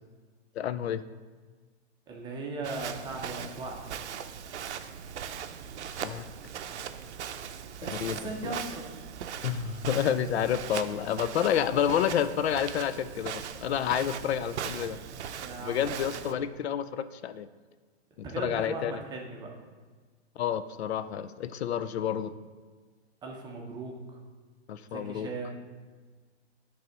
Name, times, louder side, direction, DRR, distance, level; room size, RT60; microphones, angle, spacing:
voice 1, 0.6-1.0 6.0-6.2 7.8-8.5 9.4-15.0 15.6-17.5 18.4-19.0 20.4-22.4 24.7-25.3, left 9 dB, 65° left, 13 dB, 0.5 m, -29 dB
voice 2, 2.1-3.8 7.8-8.9 15.4-15.9 16.2-16.4 18.2-19.5 23.2-24.0 24.9-25.6, right 3 dB, 10° right, 0 dB, 0.7 m, -38 dB
Walk footsteps, 2.6-16.3, right 8 dB, 80° right, 0.6 m, -39 dB
9.0 x 3.4 x 5.2 m, 1.4 s
hypercardioid pair, 145°, 34 cm